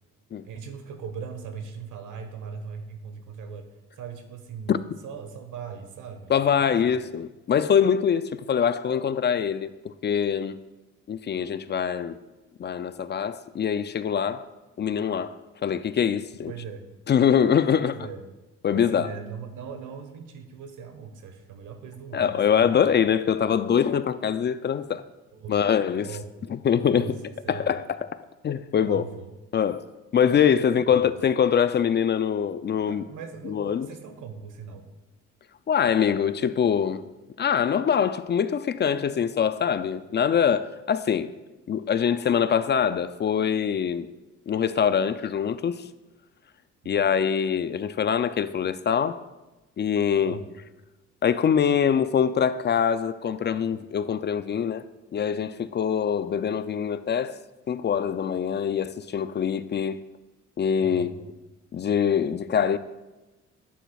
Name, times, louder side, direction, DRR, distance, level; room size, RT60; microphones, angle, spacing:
voice 1, 0.4-3.7 4.0-6.9 16.5-16.9 17.8-18.3 18.7-22.9 25.3-26.2 26.9-27.1 27.4-27.8 28.8-29.3 30.2-31.1 32.9-34.9 46.8-47.2 50.2-50.6 60.8-61.3, right 6 dB, 85° right, 1.2 m, -40 dB
voice 2, 6.3-10.6 11.1-12.2 12.6-14.5 14.8-16.5 17.1-17.9 18.6-19.1 22.1-25.0 25.5-26.1 26.5-27.2 27.5-27.8 28.4-29.0 29.5-29.8 30.1-33.0 33.5-33.9 35.7-37.0 37.4-41.3 41.7-44.1 44.5-45.8 46.9-49.2 49.8-50.4 51.2-54.9 55.1-57.4 57.7-60.0 60.6-61.1 61.7-62.8, left 8 dB, 35° left, 0.4 m, -24 dB
11.5 x 9.2 x 2.3 m
cardioid pair, 90°, 30 cm